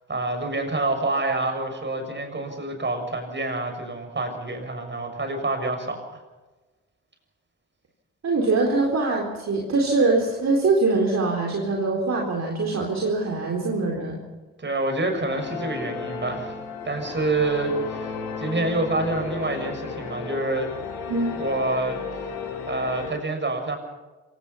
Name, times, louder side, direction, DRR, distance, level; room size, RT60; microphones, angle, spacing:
voice 1, 0.1-6.2 14.6-16.6 16.8-20.7 21.3-22.3 22.7-23.8, right 2 dB, 30° right, 5 dB, 6.9 m, -27 dB
voice 2, 8.2-14.2 21.1-21.4, right 3 dB, 45° right, 0 dB, 4.2 m, -23 dB
sound 1, 15.3-23.1, left 5 dB, 75° left, 4.6 m, -34 dB
26.5 x 18.0 x 5.8 m, 1.2 s
hypercardioid pair, 45°, 36 cm